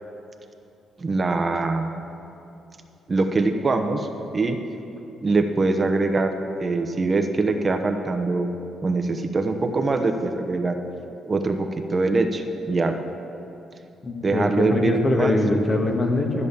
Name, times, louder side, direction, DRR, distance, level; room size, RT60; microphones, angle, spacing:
voice 1, 1.0-2.0 3.1-4.1 4.3-4.6 5.2-6.3 6.6-8.5 8.8-10.7 11.3-12.9 14.2-15.3, right 3 dB, 30° right, 5 dB, 0.9 m, -23 dB
voice 2, 14.0-16.5, left 2 dB, 35° left, 2 dB, 1.7 m, -22 dB
13.0 x 8.2 x 7.0 m, 2.9 s
cardioid pair, 90°, 0 cm